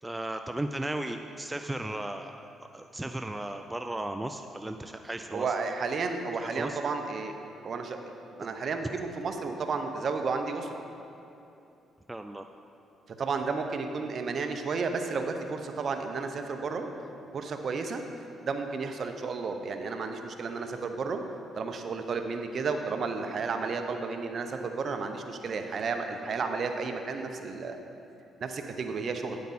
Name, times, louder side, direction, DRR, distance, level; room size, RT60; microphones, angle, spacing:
voice 1, 0.0-2.5 2.7-5.5 6.4-6.8 12.1-12.5, right 1 dB, 10° right, 6 dB, 0.3 m, -35 dB
voice 2, 5.3-7.3 7.6-8.0 8.4-10.8 13.2-16.9 17.3-18.0 18.4-21.2 21.5-27.8 28.4-29.4, right 4 dB, 55° right, 5 dB, 0.8 m, -32 dB
9.5 x 8.4 x 4.2 m, 2.8 s
cardioid pair, 90°, 0 cm